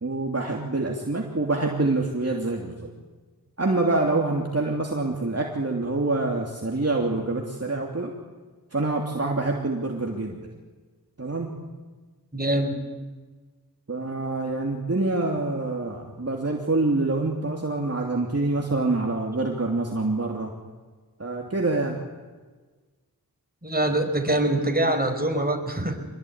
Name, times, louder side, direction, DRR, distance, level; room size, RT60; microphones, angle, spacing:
voice 1, 0.0-2.9 3.6-8.1 8.7-10.4 11.2-11.6 13.9-20.5 21.2-22.0, right 2 dB, 45° right, 0 dB, 3.1 m, -26 dB
voice 2, 12.3-12.8 23.6-26.0, right 1 dB, 25° right, 4 dB, 5.2 m, -24 dB
26.5 x 21.0 x 9.7 m, 1.3 s
wide cardioid pair, 50°, 36 cm